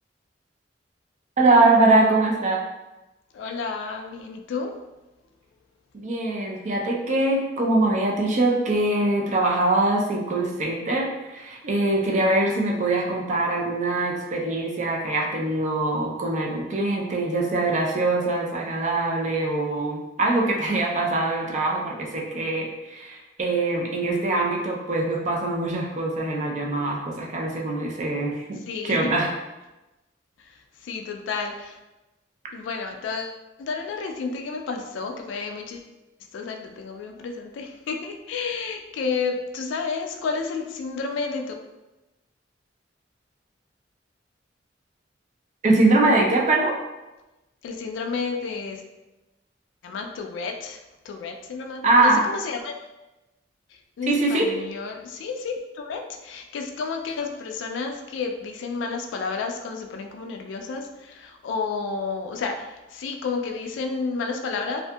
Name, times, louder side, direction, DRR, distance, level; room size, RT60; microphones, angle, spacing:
voice 1, 1.4-2.6 5.9-29.3 45.6-46.8 51.8-52.3 54.1-54.5, right 2 dB, 40° right, -1 dB, 0.4 m, -23 dB
voice 2, 3.3-4.7 28.7-29.0 30.8-31.7 32.5-35.9 36.3-41.4 47.6-48.8 49.8-50.8 51.1-52.7 54.0-64.8, left 4 dB, 75° left, 4 dB, 0.3 m, -31 dB
2.6 x 2.4 x 2.2 m, 1.0 s
head